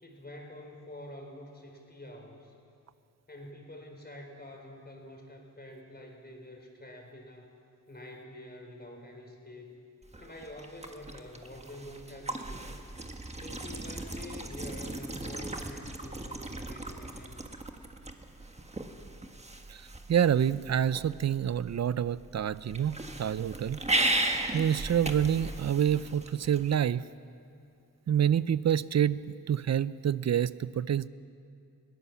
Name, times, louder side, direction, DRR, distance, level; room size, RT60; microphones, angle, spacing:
voice 1, 0.0-2.5 3.3-7.5 7.9-9.8 10.2-12.7 13.4-17.4, left 1 dB, 25° left, 2 dB, 4.2 m, -47 dB
sound 1, 10.0-26.8, right 1 dB, 20° right, 1.5 m, -37 dB
voice 2, 20.1-23.8 24.5-27.0 28.1-29.2 29.5-31.1, right 9 dB, 50° right, 17 dB, 0.5 m, -27 dB
21.0 x 17.5 x 7.2 m, 2.4 s
cardioid pair, 80°, 35 cm